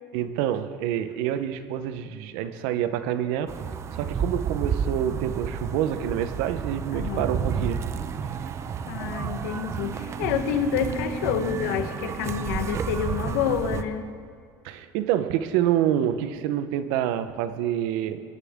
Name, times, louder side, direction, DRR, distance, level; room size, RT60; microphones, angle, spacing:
voice 1, 0.1-3.6 3.9-7.8 14.6-18.2, right 10 dB, 80° right, 11 dB, 0.8 m, -27 dB
sound 1, 3.5-13.8, right 6 dB, 30° right, 0.6 m, -31 dB
voice 2, 6.9-7.3 8.9-14.0, left 8 dB, 90° left, 8 dB, 1.1 m, -28 dB
19.5 x 11.0 x 3.6 m, 2.2 s
cardioid pair, 130°, 9 cm